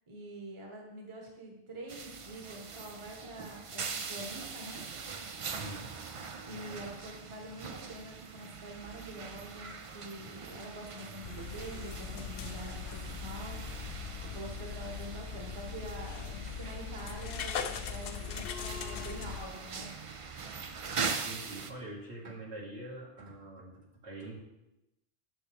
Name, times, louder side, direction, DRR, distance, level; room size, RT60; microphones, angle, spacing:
voice 1, 0.1-4.8 6.4-19.9, right 1 dB, 25° right, 0 dB, 1.2 m, -46 dB
sound 1, 1.9-21.7, right 5 dB, 50° right, 0.4 m, -42 dB
voice 2, 5.5-5.9 21.2-24.4, right 2 dB, 70° right, -4 dB, 2.2 m, -44 dB
sound 2, 11.2-19.5, left 7 dB, 60° left, 0.7 m, -40 dB
8.7 x 7.2 x 3.4 m, 0.90 s
omnidirectional pair, 1.2 m